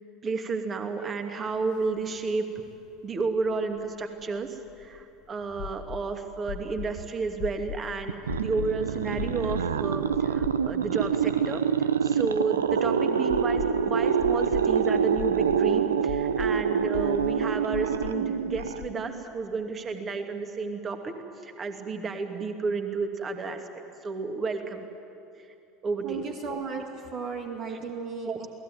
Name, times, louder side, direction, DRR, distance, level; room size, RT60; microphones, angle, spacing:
voice 1, 0.2-2.5 3.0-4.5 4.8-21.1 21.4-23.6 24.0-24.9 25.8-26.3 28.2-28.4, right 4 dB, 30° right, 5 dB, 2.5 m, -31 dB
sound 1, 1.8-1.9 2.1-2.2 3.8-5.0 5.6-6.1 6.5-7.0 7.4-7.9 8.3-8.7 9.2-9.7 10.1-10.9 11.2-11.3 13.3-13.9 14.2-14.7 15.2-15.6 16.1-16.5 16.9-17.4 17.7-18.2 18.5-18.9, left 12 dB, 50° left, 1.1 m, -38 dB
sound 2, 8.1-19.2, right 7 dB, 75° right, 0.7 m, -26 dB
voice 2, 26.0-28.5, right 5 dB, 45° right, 2 dB, 1.9 m, -35 dB
28.0 x 19.0 x 9.3 m, 2.7 s
figure-of-eight pair, 70°, 0 cm